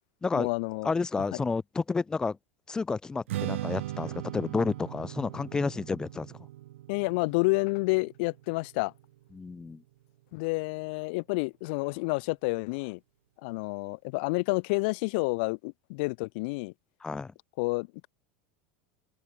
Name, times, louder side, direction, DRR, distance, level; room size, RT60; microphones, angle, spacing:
voice 1, 0.3-0.9 1.3-1.4 6.9-8.9 10.3-13.0 13.4-16.7 17.6-18.1, left 28 dB, 55° left, 1.1 m, -29 dB
voice 2, 0.8-2.4 2.7-6.3 9.3-9.8 17.0-17.3, left 4 dB, 10° left, 2.9 m, -30 dB
Strum, 3.3-9.6, right 15 dB, 90° right, 6.1 m, -39 dB
open air
supercardioid pair, 160°, 6 cm